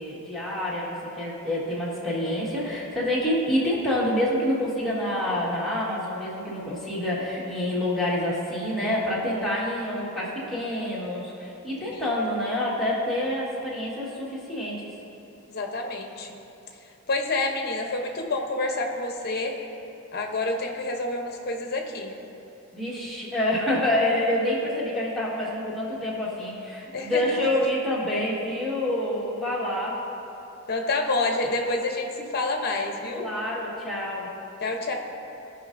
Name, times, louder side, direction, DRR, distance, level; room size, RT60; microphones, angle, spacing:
voice 1, 0.0-14.9 22.7-30.0 33.0-34.3, left 1 dB, ahead, -8 dB, 1.6 m, -27 dB
voice 2, 15.5-16.3 17.1-19.6 20.1-22.1 26.9-27.4 30.7-33.3 34.6-34.9, left 2 dB, 45° left, 3 dB, 0.8 m, -28 dB
16.0 x 5.5 x 2.6 m, 3.0 s
head